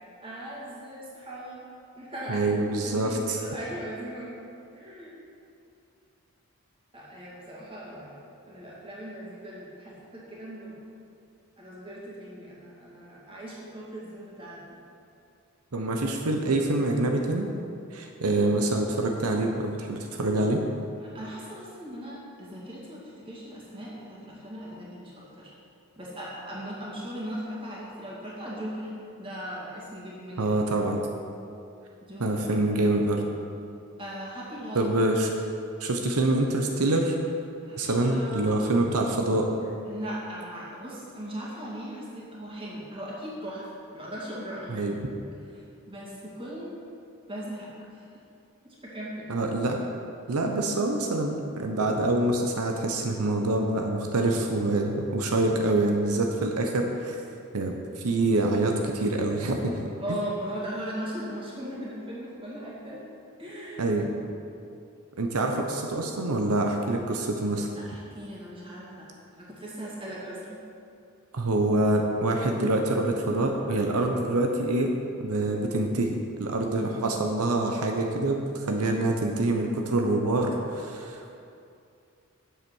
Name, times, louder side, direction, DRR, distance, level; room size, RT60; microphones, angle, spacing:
voice 1, 0.2-1.6 2.0-2.5 2.8-4.4 4.7-5.2 6.9-8.2 8.4-10.8 11.6-14.8 21.0-25.5 26.0-28.9 29.2-30.5 32.0-32.4 34.0-34.9 37.6-38.8 39.9-43.7 43.9-45.2 45.5-45.6 45.9-46.7 47.3-48.2 48.6-49.4 60.0-63.0 63.4-63.9 67.7-69.1 69.4-70.6, equal, 25° right, -6 dB, 2.3 m, -38 dB
voice 2, 2.3-3.4 15.7-17.5 17.9-20.6 30.4-31.0 32.2-33.2 34.7-35.3 35.8-37.1 37.8-39.5 44.7-44.9 49.3-49.8 50.3-57.2 57.5-57.8 58.0-60.2 63.8-64.1 65.2-67.7 71.3-74.9 75.2-81.3, right 2 dB, 85° right, 2 dB, 0.8 m, -26 dB
8.1 x 7.4 x 6.3 m, 2.5 s
head